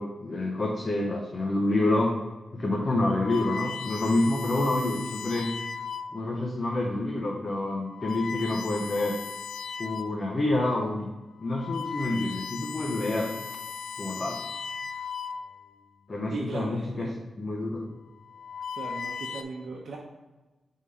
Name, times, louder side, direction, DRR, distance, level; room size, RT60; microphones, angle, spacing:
voice 1, 0.0-2.1 2.5-5.5 6.1-9.2 9.8-11.1 11.4-13.3 14.0-14.4 16.1-17.9, left 2 dB, 30° left, -1 dB, 0.7 m, -28 dB
Sweep Tone, 2.9-6.3 7.0-7.2 7.8-10.3 10.7-10.8 11.3-15.8 16.8-17.2 18.1-19.4, left 6 dB, 75° left, 0.4 m, -37 dB
voice 2, 16.3-17.2 18.8-20.0, right 3 dB, 70° right, -3 dB, 0.8 m, -37 dB
4.9 x 3.7 x 5.6 m, 1.1 s
wide cardioid pair, 130°, 0 cm